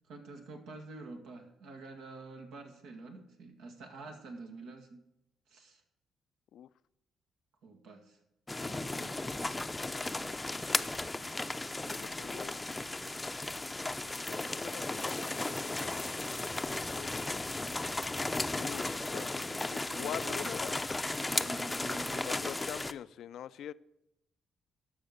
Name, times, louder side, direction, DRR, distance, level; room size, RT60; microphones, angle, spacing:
voice 1, 0.1-5.0 5.5-5.8 7.6-8.2 8.6-9.3 19.9-20.5 21.3-22.3, right 3 dB, 85° right, 4 dB, 1.8 m, -47 dB
sound 1, 8.5-22.9, left 2 dB, 15° left, 0.5 m, -35 dB
voice 2, 11.8-12.5 14.2-16.4 16.8-17.4 18.6-20.8 22.3-23.7, left 10 dB, 75° left, 17 dB, 0.3 m, -44 dB
12.5 x 5.7 x 6.6 m, 0.84 s
cardioid pair, 90°, 0 cm